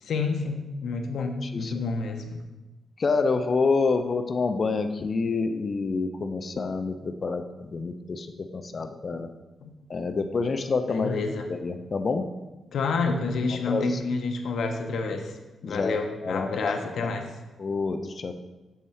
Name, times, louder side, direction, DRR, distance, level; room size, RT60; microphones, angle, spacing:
voice 1, 0.0-2.4 9.6-9.7 10.9-11.5 12.7-15.4 15.6-17.3, left 4 dB, 70° left, 5 dB, 0.7 m, -29 dB
voice 2, 1.4-1.7 3.0-9.3 9.9-11.1 11.5-12.2 13.7-14.0 15.6-15.9 16.2-17.1 17.6-18.3, left 4 dB, 35° left, 8 dB, 0.4 m, -27 dB
7.0 x 3.7 x 4.3 m, 1.1 s
wide cardioid pair, 135°, 0 cm